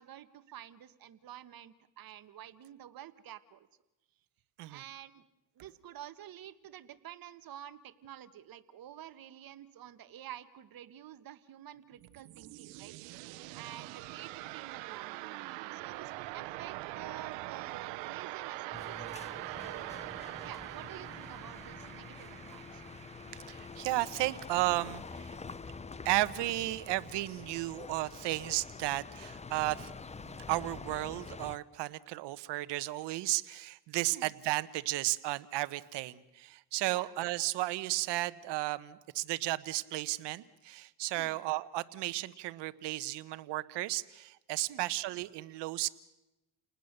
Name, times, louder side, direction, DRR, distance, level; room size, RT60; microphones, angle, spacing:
voice 1, 0.0-3.7 4.7-5.2 5.6-15.3 15.7-19.1 19.6-19.9 20.4-22.8 34.1-34.3 36.9-37.1 41.2-41.4 44.7-44.9, right 11 dB, 55° right, 13 dB, 1.5 m, -49 dB
sound 1, 11.8-24.7, right 19 dB, 90° right, 1.0 m, -43 dB
sound 2, 18.7-31.6, left 4 dB, 15° left, 0.8 m, -47 dB
voice 2, 23.5-25.4 26.0-29.9 30.2-45.9, right 17 dB, 75° right, 15 dB, 1.2 m, -34 dB
29.5 x 19.5 x 6.7 m, 0.96 s
cardioid pair, 100°, 42 cm